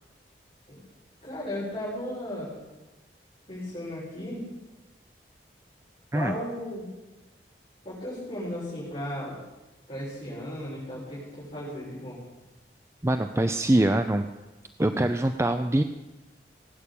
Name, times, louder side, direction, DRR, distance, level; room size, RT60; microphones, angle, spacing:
voice 1, 1.2-2.6 3.5-4.5 6.1-6.9 7.8-9.4 9.9-12.2, left 1 dB, 30° left, -10 dB, 6.2 m, -35 dB
voice 2, 13.0-14.3 14.8-15.8, right 1 dB, 15° right, 8 dB, 0.5 m, -23 dB
18.5 x 8.8 x 8.5 m, 1.1 s
head